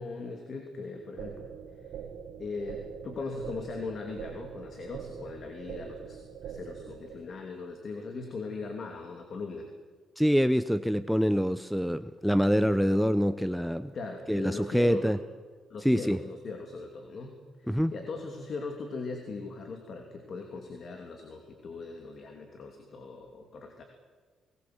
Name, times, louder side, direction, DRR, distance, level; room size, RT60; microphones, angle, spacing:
voice 1, 0.0-1.5 2.4-9.7 13.9-15.1 15.7-23.8, left 3 dB, 50° left, 4 dB, 2.9 m, -39 dB
sound 1, 1.2-7.2, right 7 dB, 80° right, 2.5 m, -43 dB
voice 2, 10.2-13.9 14.3-15.2 15.8-16.2 17.7-17.9, equal, ahead, 13 dB, 0.7 m, -25 dB
20.5 x 19.5 x 7.9 m, 1.5 s
cardioid pair, 90°, 0 cm